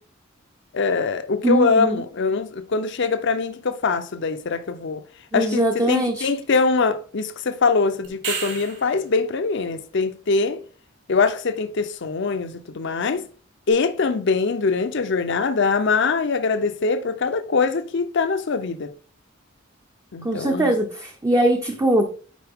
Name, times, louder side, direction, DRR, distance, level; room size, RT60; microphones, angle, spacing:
voice 1, 0.7-5.0 5.3-10.6 11.1-13.2 13.7-18.9 20.1-20.7, left 4 dB, 60° left, 0.6 m, -23 dB
voice 2, 1.4-2.0 5.3-6.3 20.2-22.1, right 1 dB, 15° right, 0.6 m, -21 dB
sound 1, 8.0-9.0 13.7-13.8, right 5 dB, 55° right, 2.6 m, -30 dB
9.2 x 4.2 x 3.6 m
head